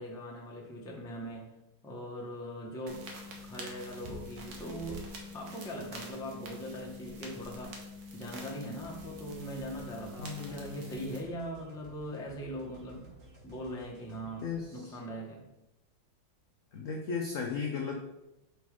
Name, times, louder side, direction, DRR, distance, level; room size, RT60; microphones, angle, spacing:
voice 1, 0.0-1.5 1.8-3.1 3.4-5.0 5.3-13.1 13.4-15.4, equal, 5° left, -2 dB, 0.5 m, -41 dB
sound 1, 2.9-11.2, left 1 dB, 75° right, 1.9 m, -45 dB
sound 2, 8.7-14.7, equal, 50° right, 1.8 m, -55 dB
voice 2, 10.2-10.9 14.4-15.0 16.7-18.0, left 5 dB, 80° left, 2 dB, 0.7 m, -36 dB
5.5 x 4.2 x 4.8 m, 0.92 s
omnidirectional pair, 2.2 m